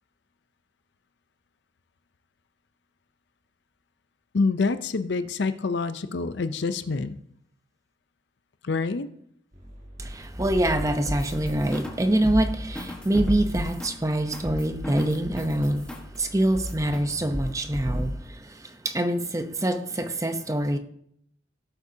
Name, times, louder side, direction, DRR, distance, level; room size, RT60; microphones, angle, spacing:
voice 1, 4.3-7.2 8.6-9.1, left 4 dB, 60° left, 0.5 m, -26 dB
sound 1, 9.5-17.4, equal, 50° right, 2.8 m, -46 dB
voice 2, 10.0-20.8, right 1 dB, 15° right, 0.7 m, -25 dB
sound 2, 10.3-12.0 12.2-16.2 16.5-17.0 17.3-18.2, equal, 5° left, 1.3 m, -33 dB
16.5 x 8.1 x 2.8 m
head